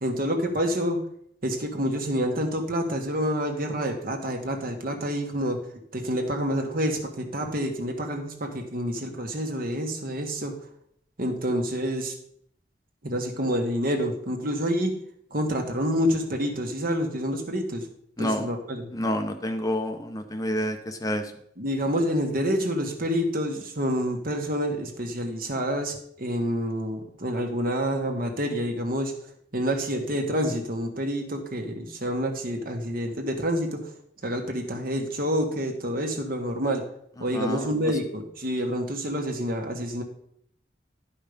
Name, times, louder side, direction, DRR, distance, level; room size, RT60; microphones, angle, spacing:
voice 1, 0.0-1.0 1.4-5.6 5.9-10.5 11.2-12.1 13.0-14.9 15.3-17.9 18.2-18.9 21.6-29.1 29.5-33.9 34.2-36.8 37.2-40.0, equal, 55° right, 4 dB, 1.4 m, -28 dB
voice 2, 18.2-18.5 18.9-21.3 37.3-37.9, left 1 dB, 20° left, 6 dB, 0.7 m, -29 dB
11.0 x 5.5 x 5.1 m, 0.68 s
head